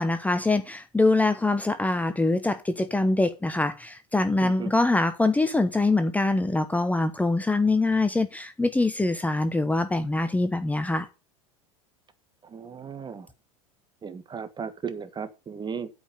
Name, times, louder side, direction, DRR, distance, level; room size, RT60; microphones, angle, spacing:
voice 1, 0.0-11.1, left 2 dB, 10° left, 0.9 m, -24 dB
voice 2, 12.4-13.3 14.0-15.9, right 6 dB, 25° right, 1.6 m, -36 dB
8.6 x 5.3 x 7.0 m
hypercardioid pair, 85°, 18 cm